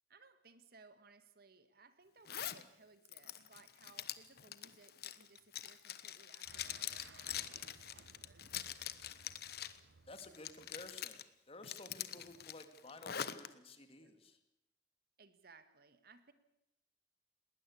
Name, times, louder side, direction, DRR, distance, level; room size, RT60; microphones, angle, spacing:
voice 1, 0.1-8.5 14.0-14.2 15.2-16.3, right 4 dB, 60° right, 11 dB, 1.6 m, -63 dB
Zipper (clothing), 2.2-2.6 3.0-9.8 10.1-11.2 11.6-13.5, left 10 dB, 60° left, 1.0 m, -44 dB
sound 1, 6.5-11.1, right 4 dB, 75° right, 0.8 m, -61 dB
voice 2, 10.1-11.2 11.5-14.4, left 2 dB, 35° left, 8 dB, 2.3 m, -53 dB
19.5 x 19.5 x 8.5 m, 0.86 s
head